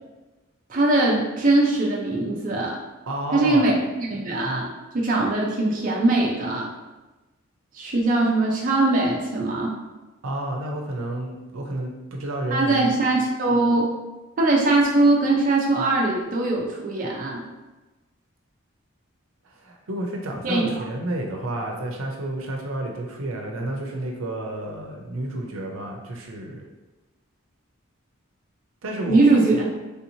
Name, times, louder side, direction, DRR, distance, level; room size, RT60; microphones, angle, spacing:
voice 1, 0.7-2.8 3.3-6.7 7.7-9.8 12.5-13.9 14.4-17.5 20.4-20.8 29.1-29.7, right 2 dB, 40° right, -3 dB, 0.5 m, -21 dB
voice 2, 3.1-3.7 10.2-13.0 19.4-26.6 28.8-29.2, right 1 dB, 90° right, 0 dB, 0.6 m, -30 dB
3.4 x 2.9 x 2.7 m, 1.1 s
head